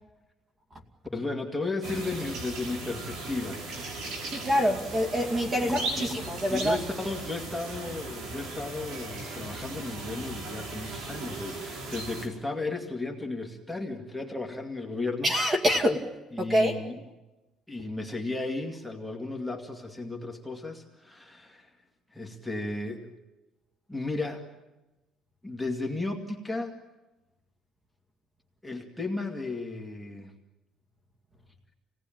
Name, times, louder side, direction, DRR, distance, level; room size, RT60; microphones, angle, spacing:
voice 1, 1.0-4.0 5.6-15.3 16.3-17.0 17.7-21.7 22.1-23.1 23.9-24.5 25.4-26.7 28.6-30.3, left 3 dB, ahead, 0 dB, 2.2 m, -34 dB
sound 1, 1.8-12.3, right 2 dB, 85° right, 5.7 m, -37 dB
voice 2, 4.3-6.8 15.2-16.0 16.4-16.8, equal, 25° right, 4 dB, 2.4 m, -26 dB
27.5 x 18.5 x 9.0 m, 1.1 s
cardioid pair, 145°, 0 cm